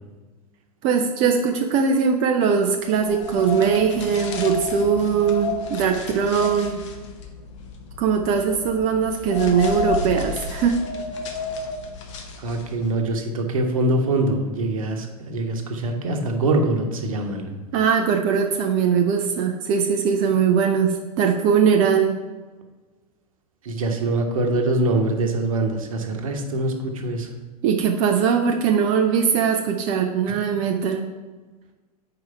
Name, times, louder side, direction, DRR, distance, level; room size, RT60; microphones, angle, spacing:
voice 1, 0.8-6.8 8.0-10.8 17.7-22.2 27.6-31.1, right 6 dB, 30° right, 3 dB, 0.4 m, -20 dB
sound 1, 2.9-12.9, left 4 dB, 50° left, 0.8 m, -31 dB
voice 2, 12.4-17.5 23.6-27.3, right 2 dB, 60° right, 4 dB, 1.0 m, -24 dB
4.7 x 4.7 x 5.4 m, 1.3 s
figure-of-eight pair, 95°, 20 cm